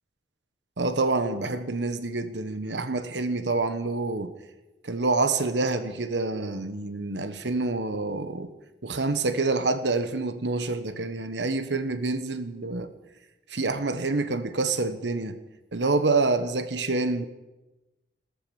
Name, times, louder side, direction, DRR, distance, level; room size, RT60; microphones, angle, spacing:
voice 1, 0.8-4.3 4.8-8.5 8.8-12.9 13.5-15.4 15.7-17.2, right 3 dB, 80° right, 1.2 m, -27 dB
14.0 x 13.0 x 7.1 m
head